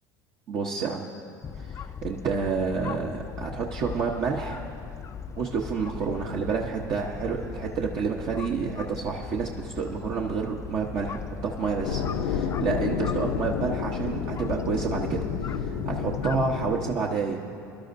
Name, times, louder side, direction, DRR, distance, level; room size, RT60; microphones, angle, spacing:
voice 1, 0.5-1.1 1.6-4.6 5.4-17.4, right 5 dB, 50° right, -1 dB, 0.9 m, -29 dB
sound 1, 1.4-16.6, left 6 dB, 30° left, 0.4 m, -39 dB
sound 2, 11.8-16.9, left 7 dB, 75° left, 0.7 m, -30 dB
23.5 x 12.0 x 2.6 m, 2.5 s
hypercardioid pair, 85°, 11 cm